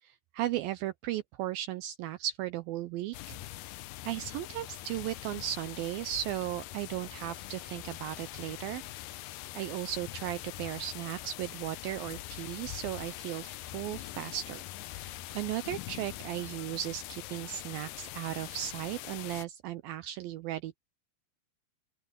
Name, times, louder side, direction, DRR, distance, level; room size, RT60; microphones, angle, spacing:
voice 1, 0.0-3.4 4.0-8.8 9.5-20.8, right 13 dB, 85° right, 2.1 m, -36 dB
sound 1, 3.1-19.5, left 16 dB, 85° left, 1.9 m, -43 dB
open air
omnidirectional pair, 4.8 m